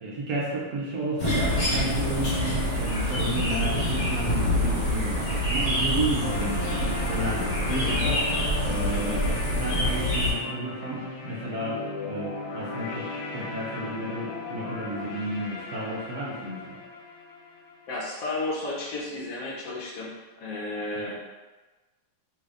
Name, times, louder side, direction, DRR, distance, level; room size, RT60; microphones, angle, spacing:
voice 1, 0.0-6.8 7.1-13.1 13.3-16.8 21.0-21.2, right 1 dB, 65° right, -5 dB, 0.9 m, -32 dB
sound 1, 1.2-10.3, equal, 40° left, 1.3 m, -26 dB
sound 2, 6.2-18.2, left 3 dB, 80° left, 1.4 m, -37 dB
voice 2, 7.7-8.0 8.9-9.2 17.9-21.2, left 2 dB, 60° left, -4 dB, 1.0 m, -33 dB
3.3 x 2.5 x 3.4 m, 1.2 s
omnidirectional pair, 2.2 m